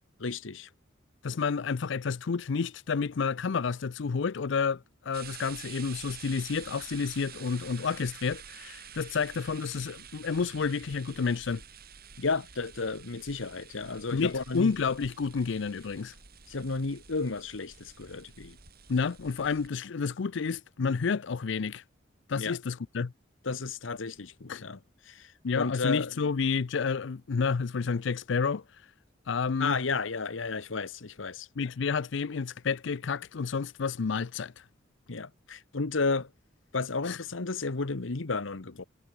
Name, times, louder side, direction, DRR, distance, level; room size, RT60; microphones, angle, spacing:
voice 1, 0.2-0.7 12.2-14.7 16.5-18.6 22.4-22.6 23.4-24.8 25.0-26.1 29.6-31.5 35.1-36.3 36.7-38.8, left 4 dB, 85° left, 1.1 m, -32 dB
voice 2, 1.2-11.6 14.1-16.1 18.9-21.8 22.3-23.1 24.5-24.6 25.4-28.6 29.3-29.8 31.6-34.5 37.1-37.2, left 5 dB, 70° left, 0.5 m, -30 dB
sound 1, 5.1-19.7, right 8 dB, 55° right, 4.2 m, -49 dB
head